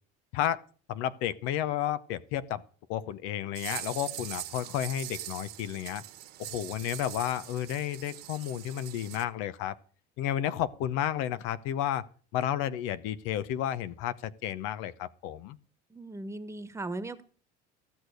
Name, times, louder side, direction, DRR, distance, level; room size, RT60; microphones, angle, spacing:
voice 1, 0.9-2.6 2.9-6.0 6.4-9.8 10.2-12.1 12.3-15.6, left 11 dB, 80° left, 0.8 m, -32 dB
sound 1, 3.6-9.2, right 13 dB, 55° right, 1.4 m, -42 dB
voice 2, 15.9-17.2, right 2 dB, 15° right, 1.3 m, -38 dB
15.0 x 6.5 x 6.5 m
supercardioid pair, 110°, 20 cm